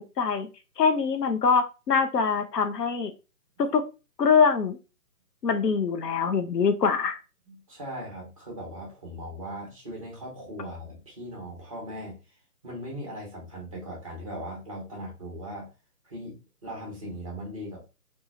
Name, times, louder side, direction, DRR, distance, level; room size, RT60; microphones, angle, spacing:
voice 1, 0.2-0.5 0.8-3.1 3.6-3.8 4.2-4.8 5.4-7.2, left 5 dB, 80° left, 8 dB, 0.7 m, -23 dB
voice 2, 7.4-12.2 12.6-15.7 16.0-17.9, equal, 20° right, -3 dB, 0.7 m, -39 dB
3.0 x 2.3 x 2.4 m, 0.30 s
figure-of-eight pair, 150°, 48 cm